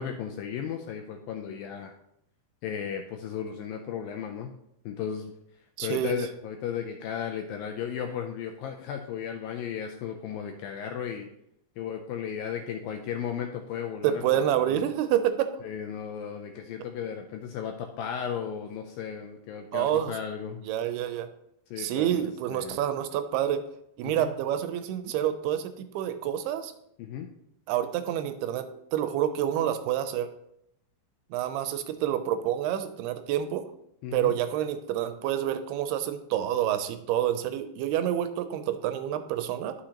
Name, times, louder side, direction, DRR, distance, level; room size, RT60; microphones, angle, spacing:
voice 1, 0.0-1.9 2.6-4.5 4.9-5.3 5.8-11.3 11.8-14.2 14.7-14.8 15.6-20.6 21.7-22.2 22.5-22.8 24.0-24.3 27.0-27.3 34.0-34.3, left 8 dB, 85° left, 4 dB, 2.1 m, -35 dB
voice 2, 5.8-6.2 14.0-15.5 19.7-20.1 20.6-21.3 21.8-23.6 24.0-26.7 27.7-30.3 31.3-33.6 34.1-39.8, right 11 dB, 80° right, 9 dB, 2.5 m, -28 dB
11.5 x 6.3 x 2.9 m, 0.76 s
omnidirectional pair, 4.7 m